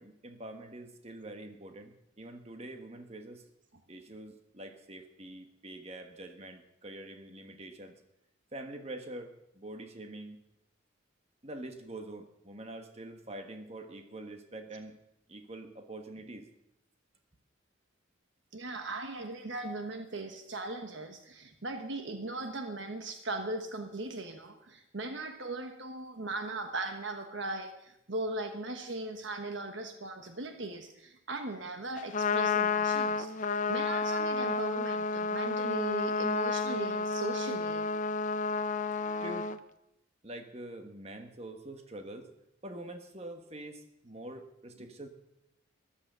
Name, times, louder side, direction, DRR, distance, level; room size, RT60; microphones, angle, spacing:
voice 1, 0.0-3.5 3.9-8.0 8.5-10.4 11.4-15.0 15.3-16.5 39.2-39.5 40.2-42.3 42.6-45.1, right 1 dB, 30° right, 6 dB, 1.4 m, -45 dB
voice 2, 18.5-37.9, right 2 dB, 65° right, 6 dB, 1.3 m, -38 dB
Trumpet, 32.0-39.6, left 4 dB, 40° left, 0.6 m, -31 dB
14.0 x 11.5 x 6.8 m, 0.83 s
head